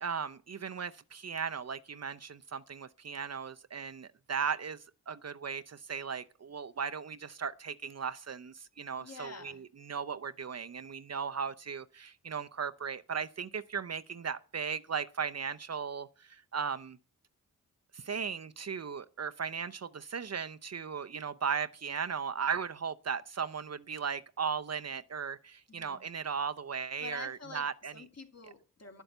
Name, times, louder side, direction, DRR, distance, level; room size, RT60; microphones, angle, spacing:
voice 1, 0.0-9.5 9.9-17.0 17.9-27.9, right 6 dB, 45° right, 0.7 m, -37 dB
voice 2, 9.0-9.6 25.7-26.0 27.0-29.0, left 4 dB, 45° left, 2.6 m, -47 dB
10.5 x 8.1 x 7.9 m
cardioid pair, 50°, 35 cm